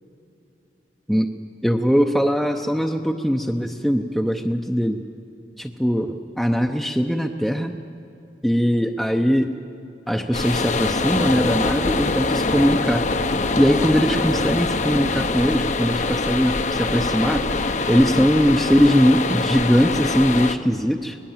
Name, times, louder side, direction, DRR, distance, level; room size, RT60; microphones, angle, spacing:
voice 1, 1.6-5.0 5.6-7.8 8.4-9.6 10.1-13.1 13.6-17.6 17.9-21.2, equal, ahead, 3 dB, 0.6 m, -20 dB
sound 1, 10.3-20.5, left 3 dB, 40° left, 0.8 m, -24 dB
25.0 x 19.5 x 7.4 m, 2.8 s
head